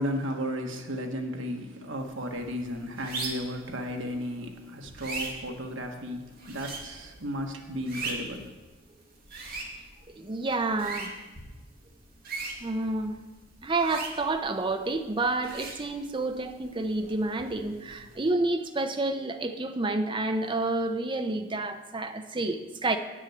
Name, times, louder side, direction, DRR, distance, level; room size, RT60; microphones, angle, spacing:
voice 1, 0.0-8.5, equal, 80° right, 3 dB, 1.3 m, -34 dB
sound 1, 2.0-18.3, right 3 dB, 50° right, 2.0 m, -42 dB
voice 2, 10.2-11.1 12.6-13.2 13.6-23.0, right 2 dB, 25° right, 7 dB, 0.7 m, -29 dB
9.0 x 6.2 x 7.7 m, 1.2 s
head